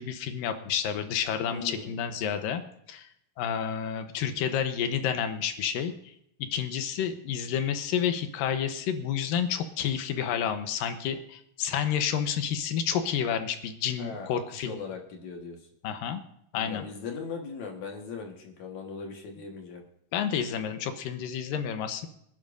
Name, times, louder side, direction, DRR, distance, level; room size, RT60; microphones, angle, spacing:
voice 1, 0.0-2.6 2.9-3.1 3.4-5.9 6.5-14.7 15.8-16.2 16.5-16.8 20.1-22.1, left 8 dB, 85° left, 8 dB, 2.6 m, -30 dB
voice 2, 1.5-1.9 14.0-15.6 16.5-19.8, left 5 dB, 60° left, 2 dB, 2.8 m, -39 dB
26.0 x 10.5 x 2.6 m, 0.76 s
omnidirectional pair, 3.9 m